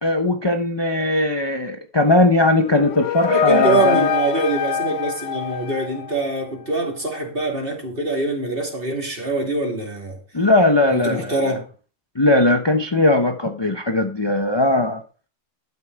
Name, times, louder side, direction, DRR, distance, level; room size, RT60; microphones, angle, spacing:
voice 1, 0.0-4.1 10.3-11.5 12.2-15.0, left 2 dB, 25° left, 0.7 m, -19 dB
sound 1, 2.5-6.4, left 8 dB, 70° left, 1.0 m, -24 dB
voice 2, 3.3-10.2 10.9-11.6, right 2 dB, 45° right, 2.9 m, -24 dB
12.5 x 7.2 x 4.6 m
omnidirectional pair, 1.3 m